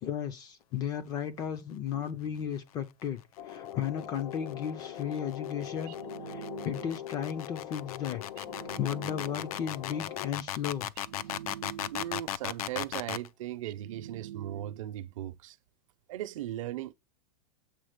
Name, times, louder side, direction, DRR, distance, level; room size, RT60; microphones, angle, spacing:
voice 1, 0.0-6.0 6.3-8.2 8.6-10.9, left 9 dB, 20° left, 0.5 m, -35 dB
sound 1, 3.4-10.3, left 11 dB, 80° left, 1.3 m, -42 dB
sound 2, 4.0-13.3, left 12 dB, 65° left, 0.6 m, -37 dB
sound 3, 5.9-7.2 8.4-9.7 11.0-12.3 13.6-15.0, right 12 dB, 90° right, 0.5 m, -46 dB
voice 2, 11.9-15.6 16.1-16.9, right 13 dB, 55° right, 0.7 m, -38 dB
7.6 x 3.7 x 6.6 m
supercardioid pair, 170°, 20 cm